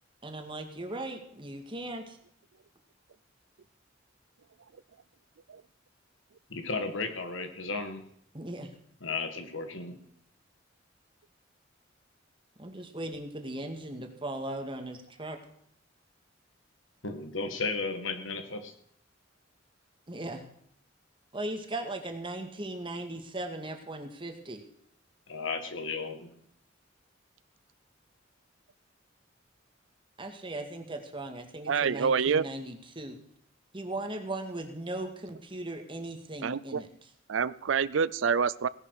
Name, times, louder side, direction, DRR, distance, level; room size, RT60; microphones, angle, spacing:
voice 1, 0.2-2.2 8.3-8.7 12.6-15.4 20.1-20.5 21.3-24.6 30.2-33.2 33.7-36.9, right 1 dB, 25° right, 5 dB, 2.0 m, -38 dB
voice 2, 6.5-8.0 9.0-10.0 17.0-18.7 25.3-26.3, left 3 dB, 80° left, 7 dB, 1.9 m, -34 dB
voice 3, 31.7-32.5 36.4-36.8 37.3-38.7, right 6 dB, 75° right, 19 dB, 0.5 m, -27 dB
17.5 x 11.0 x 4.9 m, 0.69 s
head